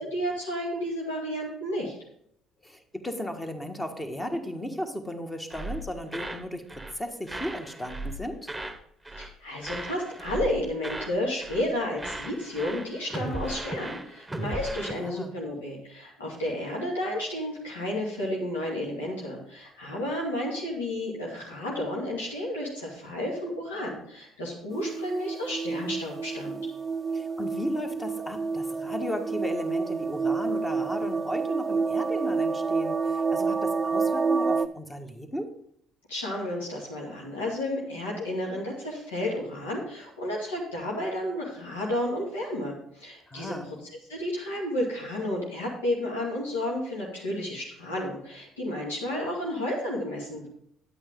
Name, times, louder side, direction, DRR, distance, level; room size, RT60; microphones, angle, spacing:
voice 1, 0.0-2.0 9.1-26.6 36.1-43.7 44.1-50.5, left 1 dB, 85° left, -4 dB, 2.0 m, -32 dB
voice 2, 2.6-8.5 14.9-15.3 27.1-35.5 43.3-43.7, left 1 dB, 15° left, 5 dB, 1.5 m, -35 dB
sound 1, 5.5-6.4 6.7-7.0 7.3-8.8 9.0-9.3 9.6-11.2 11.4-11.7 12.0-14.9, right 1 dB, 5° right, 1.2 m, -37 dB
sound 2, 24.7-34.7, right 4 dB, 25° right, 0.4 m, -29 dB
9.5 x 8.6 x 3.7 m, 0.70 s
hypercardioid pair, 60°, 0 cm